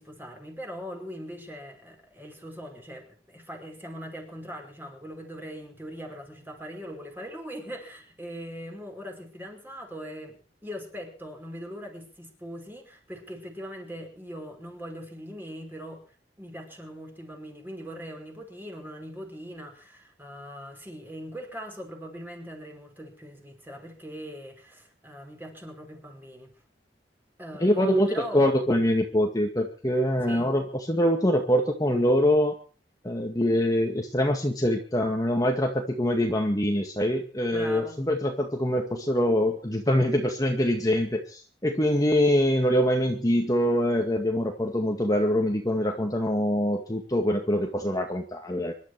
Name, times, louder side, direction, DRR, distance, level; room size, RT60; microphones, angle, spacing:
voice 1, 0.0-16.0 16.4-26.5 27.4-28.5 30.3-30.5 37.5-38.0, equal, 10° right, 2 dB, 5.2 m, -41 dB
voice 2, 27.6-28.1 28.3-32.6 33.0-48.7, equal, 20° left, 2 dB, 2.0 m, -24 dB
26.0 x 12.0 x 4.7 m, 0.39 s
head